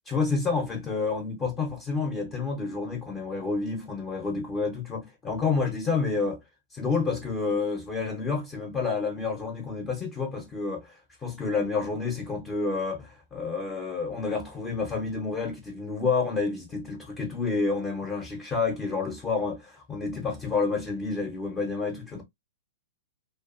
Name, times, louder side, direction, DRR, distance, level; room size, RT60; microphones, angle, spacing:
voice 1, 0.1-6.4 6.7-22.2, left 4 dB, 20° left, 0.8 m, -29 dB
2.4 x 2.3 x 2.4 m
hypercardioid pair, 115°, 0 cm